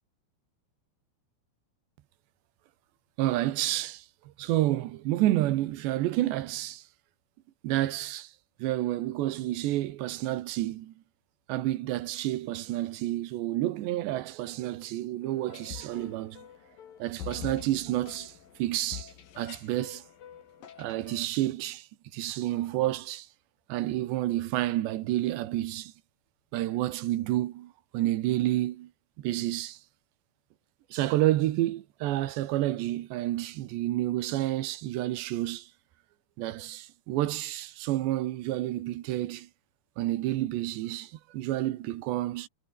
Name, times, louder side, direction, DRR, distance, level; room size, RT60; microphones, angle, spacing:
voice 1, 3.2-4.1 4.4-6.8 7.6-8.3 8.6-10.9 11.5-16.5 17.0-18.3 18.6-19.1 19.4-20.0 20.8-21.9 22.1-23.3 23.7-25.9 26.5-28.9 29.2-29.8 30.9-35.7 36.4-39.5 40.0-42.5, right 15 dB, 85° right, 3.5 m, -29 dB
sound 1, 15.2-21.3, left 8 dB, 55° left, 4.0 m, -46 dB
omnidirectional pair, 5.0 m